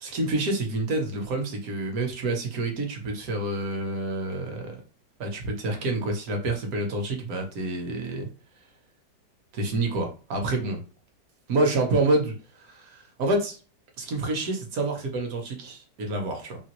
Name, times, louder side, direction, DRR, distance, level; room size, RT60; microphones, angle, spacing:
voice 1, 0.0-4.8 5.2-8.3 9.5-10.8 11.5-13.6 14.0-16.6, right 2 dB, 60° right, 1.1 m, -28 dB
3.0 x 2.4 x 2.9 m
omnidirectional pair, 1.9 m